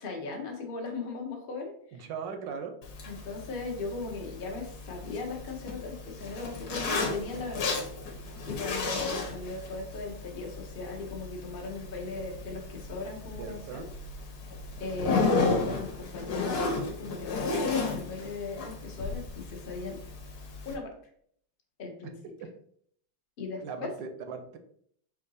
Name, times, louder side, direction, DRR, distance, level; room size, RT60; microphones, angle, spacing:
voice 1, 0.0-2.1 3.1-7.8 8.5-13.8 14.8-20.0 20.6-20.9 21.8-22.1 23.4-23.9, left 3 dB, 45° left, 1 dB, 0.7 m, -38 dB
voice 2, 1.9-2.8 13.3-13.9 23.6-24.6, right 6 dB, 80° right, 6 dB, 1.3 m, -39 dB
Zipper (clothing), 2.8-20.7, left 3 dB, 65° left, 1.3 m, -34 dB
4.6 x 2.6 x 4.0 m, 0.64 s
omnidirectional pair, 2.0 m